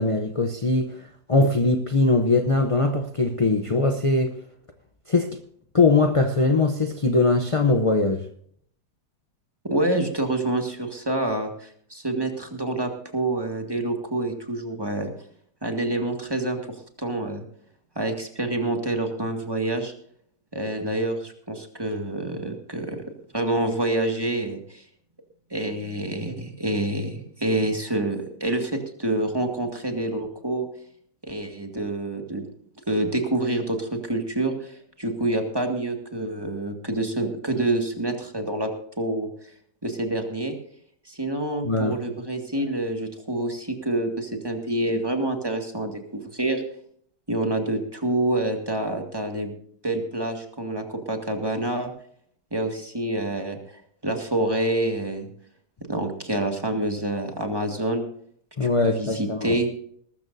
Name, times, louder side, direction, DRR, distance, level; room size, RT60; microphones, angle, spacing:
voice 1, 0.0-4.4 5.1-5.4 5.7-8.2 41.6-42.0 58.6-59.5, left 3 dB, 40° left, 0.4 m, -21 dB
voice 2, 9.6-15.1 15.6-17.4 18.0-19.9 20.5-23.0 23.3-24.8 25.5-30.7 31.2-32.4 32.9-38.7 39.0-39.3 39.8-40.6 41.1-46.0 46.3-46.6 47.3-49.5 49.8-51.9 52.5-55.3 55.9-58.0 58.6-59.7, right 1 dB, 15° right, 1.9 m, -27 dB
20.0 x 13.0 x 2.7 m
omnidirectional pair, 1.8 m